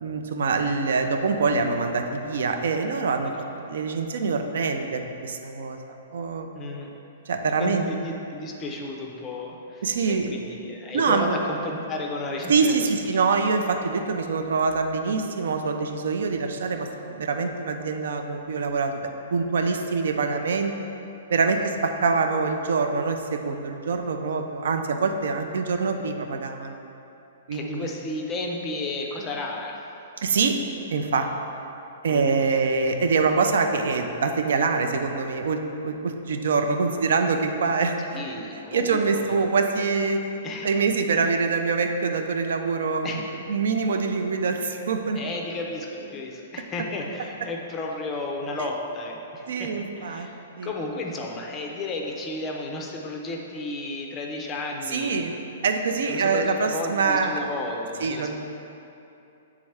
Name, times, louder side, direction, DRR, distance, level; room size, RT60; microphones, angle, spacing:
voice 1, 0.0-3.3 3.7-5.8 6.1-6.5 7.3-7.8 9.8-10.3 10.9-11.4 12.5-20.7 21.3-26.8 27.5-27.9 30.2-30.6 30.9-31.3 32.0-38.2 38.7-40.3 40.6-43.2 43.5-45.2 49.5-50.3 50.6-50.7 54.9-55.3 55.6-57.4 58.0-58.4, right 4 dB, 70° right, 5 dB, 0.4 m, -25 dB
voice 2, 6.6-6.9 7.6-13.2 27.5-29.8 32.1-32.4 38.1-39.5 40.4-40.7 43.0-43.2 45.2-55.2 56.1-58.4, left 2 dB, 15° left, 0 dB, 0.4 m, -33 dB
8.3 x 3.6 x 3.3 m, 2.8 s
hypercardioid pair, 175°, 0 cm